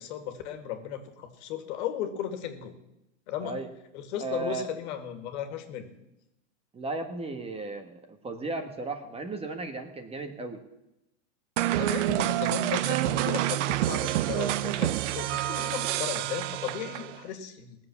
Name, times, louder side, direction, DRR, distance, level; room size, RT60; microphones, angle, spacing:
voice 1, 0.0-2.8 3.3-3.6 3.9-5.9 11.7-17.8, left 10 dB, 60° left, 7 dB, 2.2 m, -36 dB
voice 2, 4.2-4.7 6.7-10.6, right 3 dB, 15° right, 6 dB, 1.5 m, -35 dB
sound 1, 11.6-17.2, right 14 dB, 65° right, 0.8 m, -28 dB
18.0 x 7.4 x 7.1 m, 0.89 s
hypercardioid pair, 125°, 38 cm